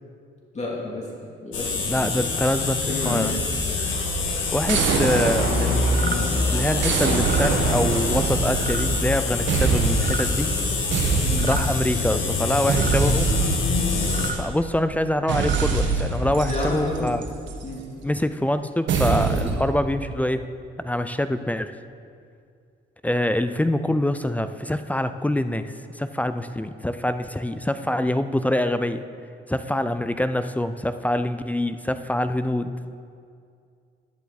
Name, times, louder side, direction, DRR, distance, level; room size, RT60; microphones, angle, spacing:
voice 1, 0.5-1.1 1.4-2.3 2.9-3.4 11.2-11.5 16.4-17.1 17.6-17.8, left 1 dB, 35° left, -4 dB, 3.1 m, -30 dB
sound 1, 1.5-14.3, left 3 dB, 80° left, 1.9 m, -25 dB
voice 2, 1.9-3.4 4.5-10.5 11.4-13.3 14.3-17.2 18.0-20.5 20.8-21.7 23.0-29.0 29.5-32.7, left 1 dB, 5° left, 10 dB, 0.4 m, -25 dB
sound 2, 4.7-6.3 6.8-9.2 9.5-10.3 10.9-11.9 12.7-14.6 15.3-17.7 18.9-19.6, right 4 dB, 70° right, 1.4 m, -24 dB
sound 3, 5.9-6.2 7.1-7.5 8.6-8.9 9.9-10.3 11.3-11.7 12.7-13.0 14.0-14.4 15.2-15.7, right 6 dB, 45° right, 0.8 m, -33 dB
10.5 x 10.5 x 4.2 m, 2.3 s
cardioid pair, 90°, 20 cm